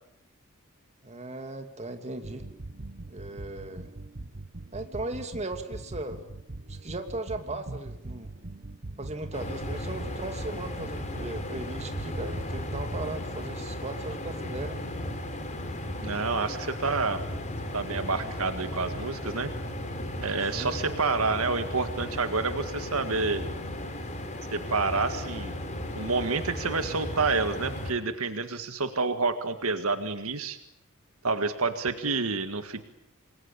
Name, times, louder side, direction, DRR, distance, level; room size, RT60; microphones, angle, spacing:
voice 1, 1.0-2.4 3.1-3.9 4.7-6.3 6.7-8.3 9.0-14.8 20.5-20.8, right 2 dB, 30° right, 6 dB, 2.6 m, -37 dB
sound 1, 2.2-13.0, right 2 dB, 45° right, 1.1 m, -42 dB
sound 2, 9.3-27.9, left 1 dB, 35° left, 4.0 m, -35 dB
voice 2, 16.0-17.2 17.7-19.5 20.2-23.4 24.5-25.5 25.9-30.6 31.2-32.8, right 4 dB, 70° right, 9 dB, 1.8 m, -28 dB
28.0 x 22.0 x 8.8 m, 0.78 s
head